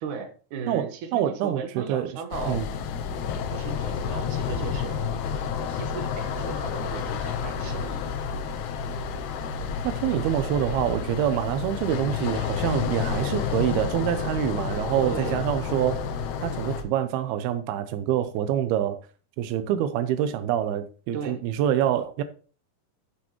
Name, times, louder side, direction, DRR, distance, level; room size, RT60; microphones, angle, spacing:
voice 1, 0.0-2.6 3.5-5.0 5.7-8.2 15.0-15.4 21.1-21.4, right 6 dB, 60° right, 2.6 m, -36 dB
voice 2, 1.1-2.1 2.5-2.7 9.8-16.1 16.4-19.0 19.4-22.2, right 10 dB, 90° right, 2.7 m, -26 dB
sound 1, 2.3-16.8, left 6 dB, 90° left, 2.9 m, -30 dB
12.0 x 7.8 x 3.1 m
omnidirectional pair, 4.4 m